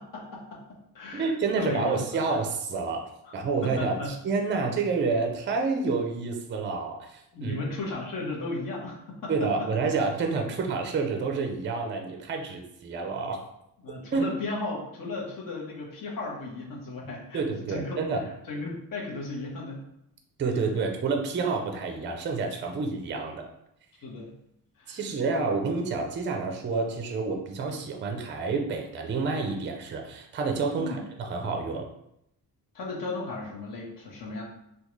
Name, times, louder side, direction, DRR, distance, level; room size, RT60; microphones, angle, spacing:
voice 1, 0.0-2.2 3.6-4.1 7.3-9.7 13.8-17.4 17.7-18.0 18.5-19.8 24.0-24.3 24.8-25.0 30.8-31.0 32.7-34.4, left 2 dB, 55° left, -3 dB, 1.0 m, -35 dB
voice 2, 1.1-7.5 9.3-13.4 14.1-14.3 17.3-18.3 20.4-23.5 24.9-31.9, right 4 dB, 30° right, 3 dB, 0.4 m, -29 dB
3.6 x 2.3 x 3.0 m, 0.79 s
wide cardioid pair, 160°, 39 cm